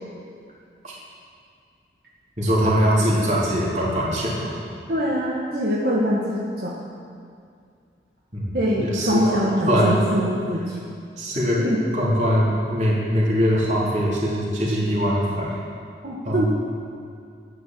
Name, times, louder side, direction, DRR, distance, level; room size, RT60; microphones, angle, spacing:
voice 1, 2.4-4.5 8.3-9.4 9.7-10.0 11.2-11.6 11.9-15.5 16.2-16.5, equal, 40° right, -6 dB, 3.8 m, -22 dB
voice 2, 4.9-6.8 8.5-10.8 11.6-11.8 16.0-16.5, equal, 60° right, -5 dB, 1.7 m, -23 dB
14.0 x 10.5 x 7.8 m, 2.3 s
head